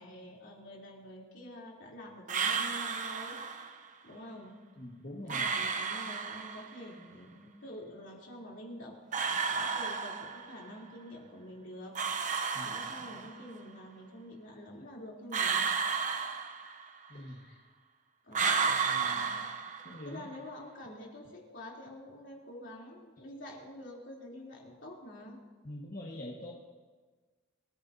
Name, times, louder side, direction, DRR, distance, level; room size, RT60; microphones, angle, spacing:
voice 1, 0.0-3.4 4.0-4.6 5.2-11.9 12.6-15.7 17.1-17.7 18.2-19.5 20.1-25.4, left 1 dB, 65° left, -3 dB, 3.6 m, -47 dB
sound 1, 2.3-3.8 5.3-6.8 9.1-10.7 12.0-13.5 15.3-17.1 18.3-20.2, right 5 dB, 40° right, 0.9 m, -32 dB
voice 2, 4.8-5.5 12.5-12.8 17.1-17.4 18.7-19.4 19.9-20.2 25.6-26.5, left 1 dB, 45° left, -3 dB, 1.7 m, -44 dB
25.5 x 14.5 x 2.9 m, 1.4 s
head